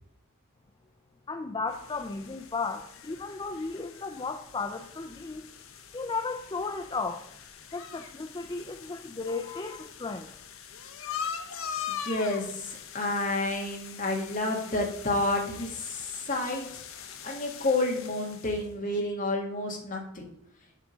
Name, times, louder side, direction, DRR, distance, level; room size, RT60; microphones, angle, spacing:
voice 1, 1.3-5.4 5.9-7.3 7.7-10.3, left 4 dB, 20° left, 5 dB, 0.4 m, -34 dB
sound 1, 1.7-18.7, left 7 dB, 65° left, 0.7 m, -42 dB
voice 2, 11.9-16.7 17.2-20.3, left 2 dB, 35° left, 0 dB, 1.7 m, -30 dB
7.5 x 3.6 x 6.2 m, 0.78 s
head